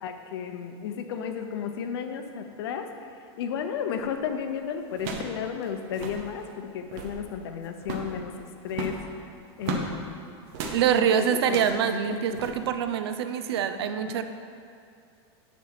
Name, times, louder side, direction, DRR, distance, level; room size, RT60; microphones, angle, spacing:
voice 1, 0.0-2.9 3.4-9.0 9.6-10.2 11.0-11.6 11.9-12.4 14.0-14.2, left 7 dB, 70° left, 6 dB, 0.7 m, -33 dB
sound 1, 4.0-4.2 4.9-5.4 5.6-5.7 5.9-6.2 6.7-7.2 7.8-8.2 8.7-9.9 10.5-10.8 11.4-11.8 12.3-12.5, right 4 dB, 40° right, 0.9 m, -35 dB
voice 2, 10.7-14.2, right 8 dB, 70° right, 9 dB, 0.6 m, -25 dB
9.4 x 4.2 x 5.8 m, 2.4 s
supercardioid pair, 175°, 14 cm